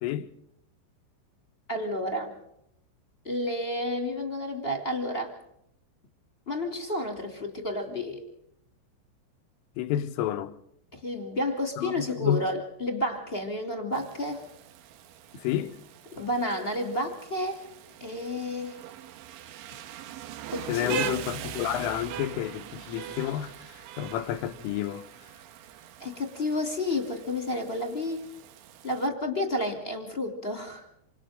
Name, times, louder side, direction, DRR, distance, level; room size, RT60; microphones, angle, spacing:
voice 1, 1.7-2.4 3.2-5.4 6.5-8.2 10.9-14.4 16.2-17.6 18.0-18.8 20.5-21.1 26.0-28.3 28.8-30.8, left 1 dB, 20° left, 2.0 m, -31 dB
voice 2, 9.8-10.5 11.8-12.4 15.4-15.8 20.7-25.1, left 11 dB, 80° left, 3.8 m, -30 dB
Rain, 13.9-29.1, right 11 dB, 75° right, 3.6 m, -42 dB
28.0 x 27.0 x 3.7 m
omnidirectional pair, 5.9 m